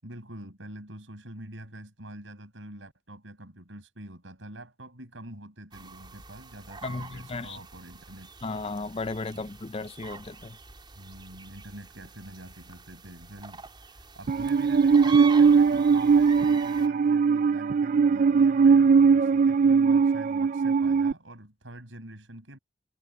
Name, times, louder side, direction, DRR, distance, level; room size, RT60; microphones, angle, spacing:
voice 1, 0.0-8.3 9.3-9.5 10.9-22.6, right 1 dB, 90° right, 6.3 m, -45 dB
sound 1, 5.7-16.9, right 5 dB, 25° right, 3.9 m, -44 dB
voice 2, 6.8-7.6 8.4-10.6, left 3 dB, 30° left, 0.5 m, -35 dB
Musical instrument, 14.3-21.1, right 5 dB, 45° right, 0.4 m, -20 dB
head